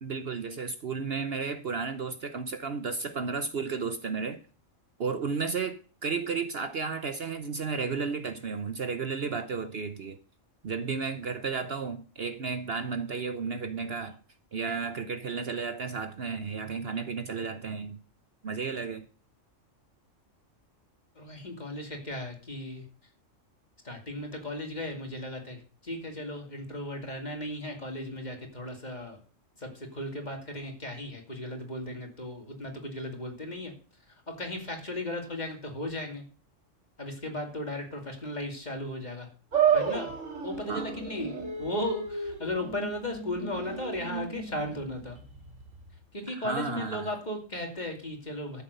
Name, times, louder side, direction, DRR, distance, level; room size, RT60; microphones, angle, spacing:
voice 1, 0.0-4.4 5.0-10.2 10.6-14.2 14.5-18.0 18.4-19.1 40.7-41.0 46.3-47.1, right 5 dB, 55° right, 1.0 m, -33 dB
voice 2, 21.2-22.8 23.8-29.2 29.6-33.7 34.3-36.2 37.0-39.3 39.7-40.2 40.4-45.2 46.1-48.6, left 1 dB, 35° left, 2.8 m, -36 dB
sound 1, 39.5-46.0, right 7 dB, 75° right, 2.4 m, -32 dB
13.0 x 7.2 x 6.7 m
omnidirectional pair, 1.3 m